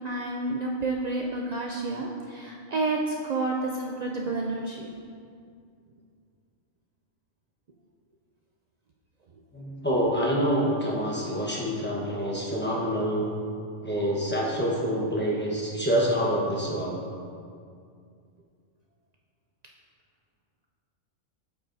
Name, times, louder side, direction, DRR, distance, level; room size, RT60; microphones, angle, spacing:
voice 1, 0.0-4.9, right 2 dB, 75° right, -1 dB, 0.3 m, -30 dB
voice 2, 9.5-13.3 13.8-17.0, equal, 10° left, -5 dB, 1.0 m, -26 dB
8.1 x 6.8 x 2.7 m, 2.3 s
omnidirectional pair, 1.3 m